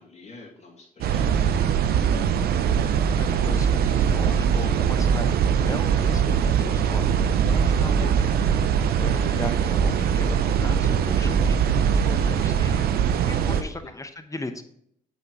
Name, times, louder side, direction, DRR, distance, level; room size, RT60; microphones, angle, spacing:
voice 1, 0.0-2.1 9.1-9.4 13.4-13.9, left 4 dB, 40° left, -1 dB, 2.6 m, -44 dB
sound 1, 1.0-13.6, right 7 dB, 60° right, 0.6 m, -22 dB
voice 2, 3.2-12.9 13.2-14.6, left 2 dB, 20° left, 9 dB, 0.9 m, -38 dB
8.2 x 4.9 x 3.8 m, 0.69 s
hypercardioid pair, 45°, 18 cm